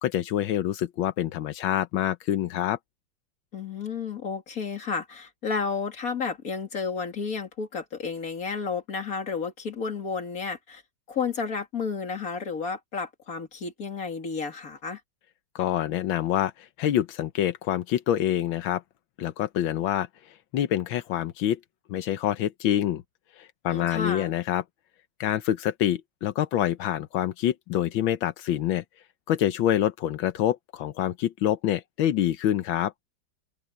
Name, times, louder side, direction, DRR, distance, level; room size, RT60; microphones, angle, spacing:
voice 1, 0.0-2.8 15.5-18.8 19.2-21.6 21.9-23.0 23.4-24.6 25.2-28.8 29.3-32.9, left 11 dB, 90° left, 1.6 m, -26 dB
voice 2, 3.5-10.8 11.1-15.0 23.7-24.3, left 5 dB, 45° left, 2.8 m, -32 dB
open air
omnidirectional pair, 2.1 m